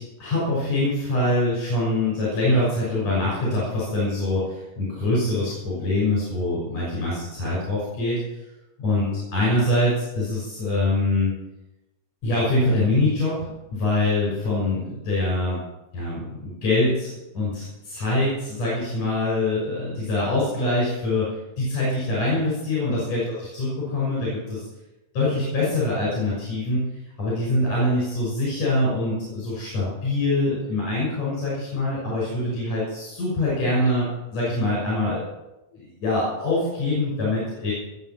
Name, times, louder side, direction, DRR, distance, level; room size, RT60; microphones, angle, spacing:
voice 1, 0.0-8.2 8.8-9.1 9.3-11.3 12.2-13.4 13.7-15.6 15.9-21.3 21.6-24.6 25.1-26.9 27.2-35.2 35.8-37.7, left 2 dB, 70° left, -6 dB, 7.2 m, -24 dB
20.0 x 8.1 x 5.9 m, 0.98 s
omnidirectional pair, 3.3 m